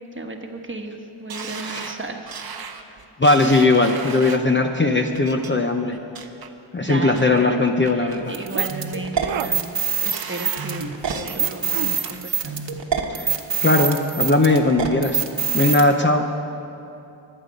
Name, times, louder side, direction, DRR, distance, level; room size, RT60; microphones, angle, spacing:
voice 1, 0.0-2.5 6.8-7.5 7.9-10.9 11.1-12.6, right 2 dB, 25° right, 3 dB, 1.2 m, -34 dB
sound 1, 1.3-4.5 5.1-5.5 5.9-6.5 6.9-7.4 7.8-8.5 8.8-9.4 9.8-11.4 11.8-12.4 12.8-12.9, right 6 dB, 50° right, 0.9 m, -37 dB
voice 2, 3.2-6.0 6.7-8.4 13.1-13.3 13.6-15.2 15.5-16.3, left 2 dB, 25° left, 4 dB, 0.7 m, -19 dB
sound 2, 8.3-15.8, right 7 dB, 65° right, 1.3 m, -25 dB
sound 3, 8.3-8.7 9.2-9.5 11.4-12.0, right 12 dB, 80° right, 0.6 m, -30 dB
23.0 x 8.2 x 5.2 m, 2.8 s
wide cardioid pair, 105°, 47 cm